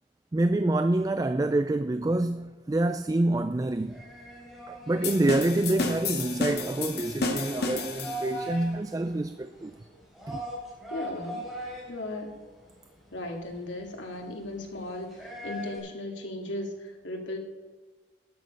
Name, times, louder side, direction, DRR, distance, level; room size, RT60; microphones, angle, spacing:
voice 1, 0.3-4.1 4.7-9.7 10.3-10.4, right 2 dB, 20° right, 0.3 m, -27 dB
sound 1, 3.7-15.8, equal, ahead, 4.1 m, -42 dB
sound 2, 5.0-8.5, left 3 dB, 55° left, 1.6 m, -31 dB
voice 2, 10.9-11.5 11.9-12.4 13.1-17.4, left 1 dB, 85° left, 2.1 m, -36 dB
12.5 x 8.8 x 5.2 m
head